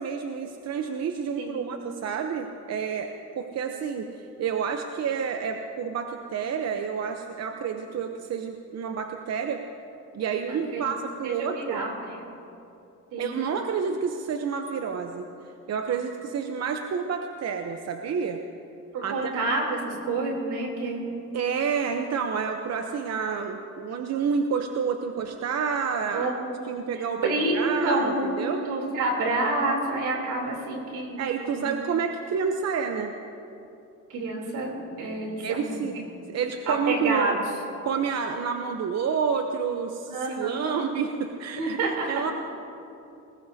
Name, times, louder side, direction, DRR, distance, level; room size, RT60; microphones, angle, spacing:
voice 1, 0.0-3.1 3.4-9.6 10.1-11.8 13.2-15.3 15.7-18.4 19.0-19.3 21.3-26.3 26.7-27.2 27.5-28.6 31.2-33.1 35.4-35.9 36.3-37.4 37.8-41.8 42.1-42.3, right 6 dB, 60° right, 5 dB, 0.9 m, -29 dB
voice 2, 10.5-10.8 11.2-12.2 13.1-13.4 18.9-21.1 26.1-26.4 26.9-31.7 34.1-35.8 36.1-36.2 36.7-37.3 40.1-40.9 41.5-42.2, right 2 dB, 90° right, 0 dB, 3.5 m, -28 dB
20.0 x 20.0 x 2.8 m, 2.7 s
cardioid pair, 90°, 30 cm